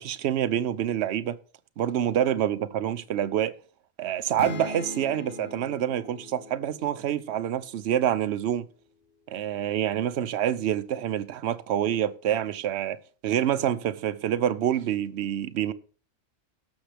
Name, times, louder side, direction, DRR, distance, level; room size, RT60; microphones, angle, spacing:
voice 1, 0.0-1.4 1.8-3.5 4.0-8.7 9.3-13.0 13.2-15.7, right 10 dB, 65° right, 0.9 m, -27 dB
sound 1, 4.4-8.1, left 3 dB, 55° left, 1.4 m, -41 dB
17.5 x 6.3 x 3.4 m
omnidirectional pair, 1.3 m